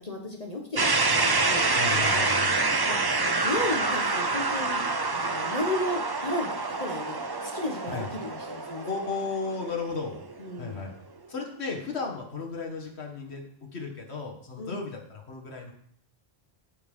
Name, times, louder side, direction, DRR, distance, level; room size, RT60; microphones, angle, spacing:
voice 1, 0.0-4.8 5.1-8.8 10.4-10.8 14.6-14.8, left 1 dB, 35° left, 0 dB, 1.5 m, -34 dB
sound 1, 0.8-10.6, right 3 dB, 25° right, 0.7 m, -27 dB
voice 2, 1.8-2.5 7.9-8.1 8.8-10.2 10.6-10.9 11.3-15.7, left 4 dB, 80° left, 1 dB, 2.0 m, -34 dB
14.0 x 5.1 x 5.5 m, 0.63 s
omnidirectional pair, 1.1 m